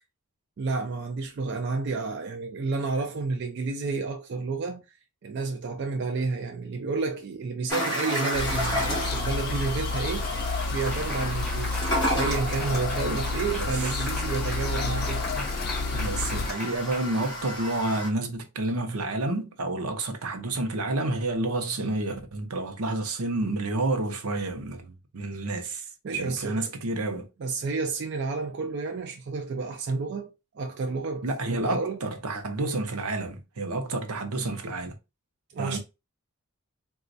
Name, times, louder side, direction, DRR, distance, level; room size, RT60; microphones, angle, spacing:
voice 1, 0.6-5.0 5.2-10.3 10.7-11.8 12.1-15.3 26.0-26.7 27.4-32.0 35.5-35.8, right 4 dB, 50° right, 0.4 m, -30 dB
sound 1, 7.7-18.1, equal, 20° left, 1.5 m, -33 dB
sound 2, 8.3-16.5, left 3 dB, 45° left, 0.4 m, -30 dB
Applause, 9.8-9.9 10.2-17.7, left 2 dB, 5° left, 2.0 m, -39 dB
voice 2, 13.0-13.6 15.3-15.4 15.9-27.3 31.2-34.9 35.6-35.8, right 2 dB, 80° right, 0.7 m, -30 dB
3.9 x 2.3 x 2.6 m
head